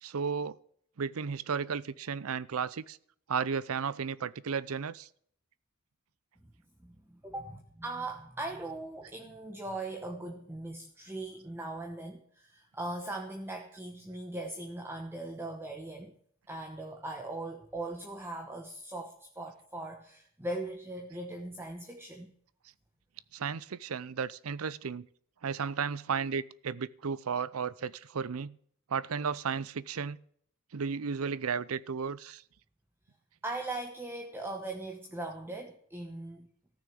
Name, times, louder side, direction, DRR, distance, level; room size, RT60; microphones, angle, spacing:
voice 1, 0.0-0.6 1.0-3.0 3.3-5.1 23.3-25.1 25.4-28.5 28.9-30.2 30.7-32.4, right 6 dB, 85° right, 0.6 m, -34 dB
voice 2, 7.2-16.1 16.5-22.3 33.4-36.5, right 2 dB, 10° right, 1.0 m, -40 dB
14.0 x 6.4 x 8.5 m
head